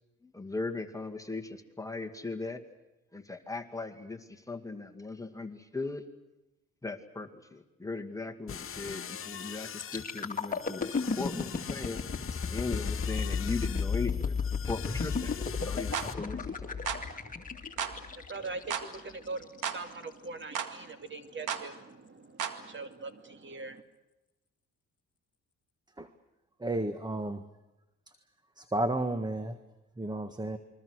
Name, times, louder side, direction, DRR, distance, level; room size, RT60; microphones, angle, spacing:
voice 1, 0.2-2.6 3.1-6.0 6.8-12.0 12.5-16.8, left 3 dB, 10° left, 4 dB, 2.2 m, -38 dB
sound 1, 8.5-16.1, left 8 dB, 45° left, 1.1 m, -43 dB
sound 2, 9.8-19.6 20.1-20.3, left 5 dB, 25° left, 2.6 m, -34 dB
sound 3, 15.9-16.1 16.9-17.0 17.8-18.0 18.7-18.9 19.6-19.8 20.5-20.7 21.5-21.7 22.4-22.6, right 8 dB, 85° right, 2.2 m, -33 dB
voice 2, 16.9-23.8, right 3 dB, 40° right, 8 dB, 2.5 m, -43 dB
voice 3, 26.6-27.4 28.6-29.6 30.0-30.6, right 1 dB, 15° right, 10 dB, 1.5 m, -32 dB
28.5 x 22.5 x 6.4 m, 1.0 s
cardioid pair, 90°, 30 cm